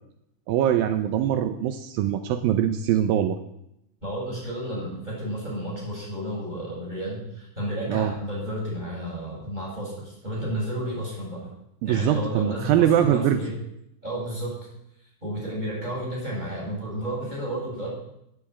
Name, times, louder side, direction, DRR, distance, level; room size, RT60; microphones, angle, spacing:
voice 1, 0.5-3.4 7.9-8.1 11.8-13.4, right 10 dB, 80° right, 8 dB, 2.6 m, -22 dB
voice 2, 4.0-11.5 11.8-13.5 14.0-14.6 15.2-17.9, right 1 dB, 10° right, -4 dB, 8.0 m, -32 dB
12.5 x 11.0 x 8.5 m, 0.78 s
omnidirectional pair, 4.1 m